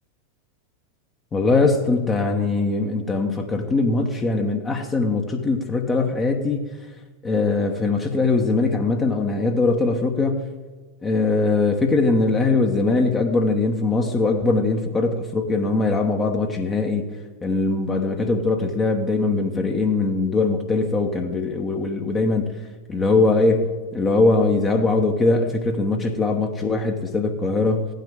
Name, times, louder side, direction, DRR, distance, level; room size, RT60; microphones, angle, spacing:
voice 1, 1.3-6.7 7.2-10.4 11.0-17.0 17.4-22.5 22.9-27.9, left 3 dB, 20° left, 3 dB, 1.1 m, -21 dB
15.5 x 9.3 x 3.6 m, 1.3 s
figure-of-eight pair, 90°, 0 cm